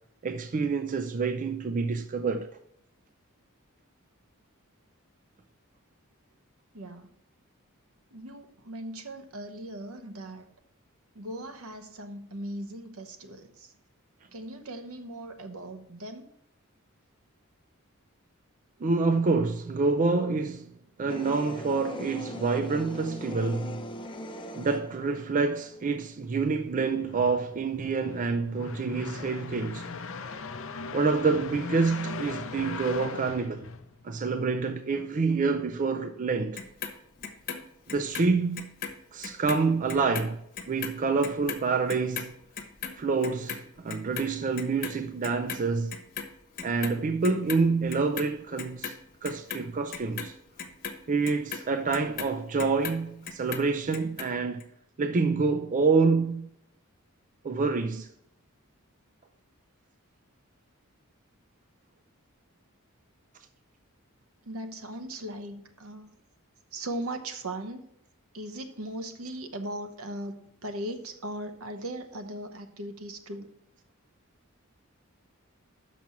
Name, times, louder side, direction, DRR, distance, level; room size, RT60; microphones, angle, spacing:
voice 1, 0.2-2.5 18.8-20.7 21.0-23.8 24.6-29.9 30.9-33.7 34.0-36.6 37.9-38.7 39.1-40.4 40.7-42.3 43.0-45.9 46.6-49.0 49.2-50.3 51.1-54.6 55.0-56.5 57.4-58.1, right 4 dB, 35° right, 0.4 m, -27 dB
voice 2, 6.7-7.1 8.1-10.5 11.1-13.7 14.3-16.3 64.5-66.1 66.7-67.8 68.3-73.5, right 1 dB, 75° right, 1.0 m, -38 dB
sound 1, 21.1-26.0, left 1 dB, 25° left, 0.6 m, -41 dB
sound 2, 26.7-34.3, left 4 dB, 65° left, 0.6 m, -39 dB
Clock, 36.6-39.0 39.2-45.6 45.9-47.0 47.2-48.3 48.6-53.0 53.3-54.3 54.6-54.7, left 6 dB, 45° left, 1.2 m, -37 dB
6.1 x 6.0 x 7.0 m
head